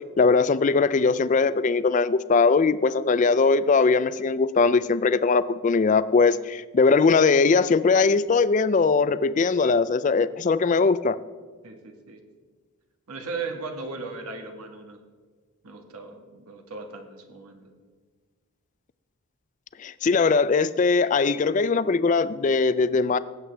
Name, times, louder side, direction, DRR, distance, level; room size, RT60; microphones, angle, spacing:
voice 1, 0.2-11.2 19.8-23.2, left 4 dB, 35° left, 15 dB, 0.3 m, -20 dB
voice 2, 11.6-12.2 13.1-15.0 15.6-17.7, right 4 dB, 90° right, 4 dB, 1.5 m, -37 dB
18.0 x 8.2 x 3.4 m, 1.5 s
head